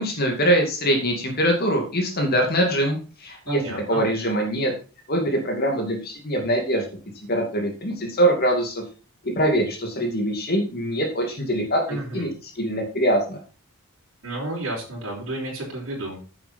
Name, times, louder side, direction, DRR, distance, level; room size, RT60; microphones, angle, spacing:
voice 1, 0.0-3.6 3.9-4.7 5.1-6.8 7.3-8.8 9.2-11.8 12.1-13.4, right 1 dB, 45° left, 2 dB, 2.4 m, -23 dB
voice 2, 3.5-4.0 11.9-12.2 14.2-16.2, right 1 dB, 60° right, -5 dB, 4.9 m, -31 dB
9.2 x 7.7 x 4.3 m, 0.36 s
head